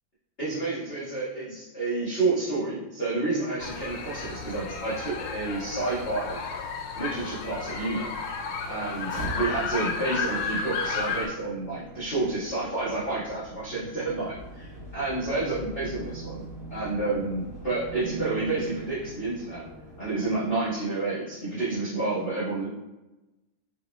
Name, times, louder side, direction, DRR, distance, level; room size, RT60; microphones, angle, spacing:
voice 1, 0.4-6.4 6.9-8.1 8.7-16.4 16.7-19.6 20.0-22.7, right 3 dB, 65° left, -11 dB, 0.5 m, -30 dB
sound 1, 3.6-11.3, left 4 dB, 85° left, 2.0 m, -33 dB
sound 2, 9.0-21.0, right 2 dB, 65° right, 2.7 m, -42 dB
5.4 x 3.1 x 2.2 m, 1.0 s
omnidirectional pair, 3.3 m